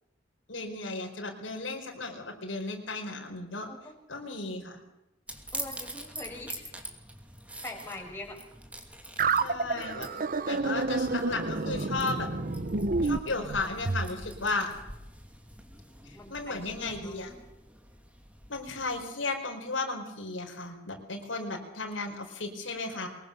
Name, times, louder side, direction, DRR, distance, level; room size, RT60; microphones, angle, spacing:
voice 1, 0.5-3.7 4.1-4.8 9.4-10.1 10.5-12.3 13.0-14.7 16.0-17.3 18.5-23.1, left 3 dB, 85° left, 2 dB, 4.8 m, -34 dB
voice 2, 3.7-4.4 5.5-6.7 7.6-8.4 14.5-14.6 16.1-17.2 22.9-23.1, left 2 dB, 10° left, -1 dB, 6.1 m, -43 dB
sound 1, 5.3-19.1, right 1 dB, 5° right, 2.7 m, -45 dB
sound 2, 9.2-14.1, right 3 dB, 45° right, 1.0 m, -29 dB
23.5 x 21.0 x 6.8 m, 0.92 s
head